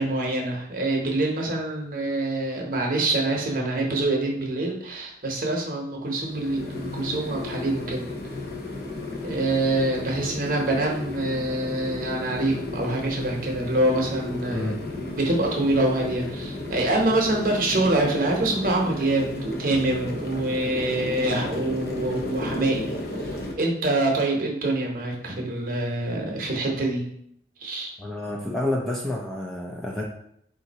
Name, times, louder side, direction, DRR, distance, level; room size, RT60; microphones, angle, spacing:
voice 1, 0.0-8.1 9.2-22.9 23.6-27.0 27.6-27.9, right 2 dB, 50° right, 0 dB, 0.8 m, -25 dB
sound 1, 6.1-23.5, left 2 dB, 55° left, 0.6 m, -34 dB
voice 2, 28.0-30.0, left 1 dB, 5° left, -2 dB, 0.4 m, -29 dB
3.7 x 2.6 x 4.0 m, 0.70 s
head